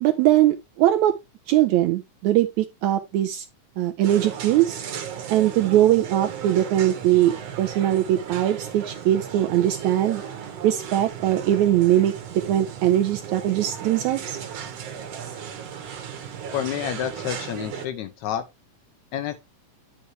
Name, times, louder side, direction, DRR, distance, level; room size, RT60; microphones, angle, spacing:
voice 1, 0.0-1.1 1.5-3.5 3.8-4.8 5.3-7.3 7.6-10.2 10.6-14.4, right 13 dB, 80° right, 1.7 m, -21 dB
sound 1, 4.0-17.9, right 8 dB, 60° right, 2.0 m, -36 dB
voice 2, 16.5-18.4 19.1-19.4, left 10 dB, 75° left, 1.8 m, -29 dB
9.8 x 5.5 x 3.2 m
omnidirectional pair, 3.8 m